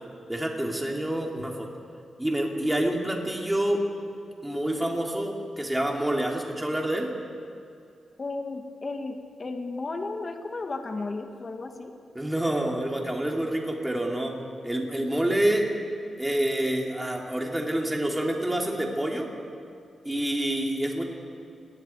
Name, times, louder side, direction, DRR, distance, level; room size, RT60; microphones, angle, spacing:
voice 1, 0.3-1.7 2.2-3.8 4.4-7.1 12.2-14.3 14.6-15.7 16.2-19.3 20.1-21.0, right 1 dB, 10° right, 0 dB, 3.3 m, -27 dB
voice 2, 8.2-11.9, left 3 dB, 40° left, 5 dB, 1.7 m, -34 dB
29.5 x 20.0 x 4.7 m, 2.4 s
cardioid pair, 95°, 0 cm